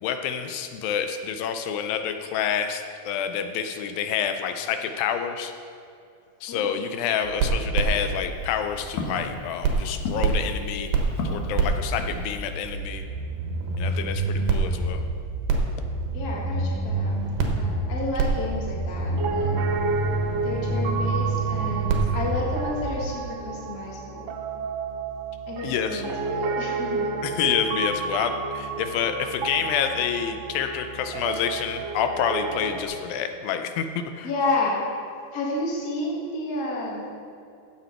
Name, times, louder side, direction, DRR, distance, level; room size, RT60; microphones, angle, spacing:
voice 1, 0.0-5.5 6.4-11.0 11.2-13.0 13.8-15.0 22.0-22.2 25.6-26.0 27.2-33.9 34.2-34.3, left 8 dB, 85° left, 7 dB, 2.5 m, -28 dB
sound 1, 7.2-9.3 9.6-23.1, right 3 dB, 80° right, 2.9 m, -27 dB
Walk footsteps, 8.1-12.7, left 3 dB, 65° left, 2.5 m, -36 dB
voice 2, 16.1-17.2 17.5-19.5 20.4-24.3 25.5-27.2 34.2-34.9 35.3-37.1, left 2 dB, 45° left, -3 dB, 1.3 m, -31 dB
Piano, 19.1-32.8, right 4 dB, 65° right, 1.9 m, -31 dB
16.0 x 7.0 x 4.4 m, 2.5 s
omnidirectional pair, 4.0 m